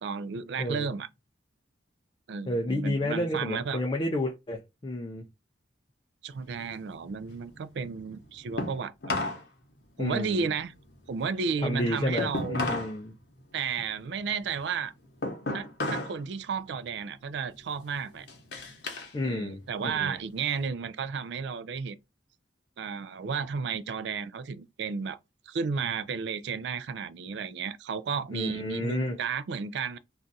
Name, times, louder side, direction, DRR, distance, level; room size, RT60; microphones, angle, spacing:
voice 1, 0.0-1.1 2.3-3.8 6.2-9.2 10.0-10.7 11.1-12.6 13.5-14.9 15.5-18.3 19.2-22.0 22.8-25.2 25.5-30.0, right 5 dB, 65° right, 0.3 m, -33 dB
voice 2, 0.6-0.9 2.5-5.3 10.0-10.5 11.6-13.2 19.1-19.6 20.0-20.2 28.3-29.2, left 1 dB, 25° left, 0.3 m, -30 dB
sound 1, 6.3-9.5 9.8-13.0 13.3-16.2 16.6-17.0 17.5-19.1 19.5-20.7, left 2 dB, 60° left, 0.8 m, -35 dB
2.5 x 2.3 x 3.9 m
head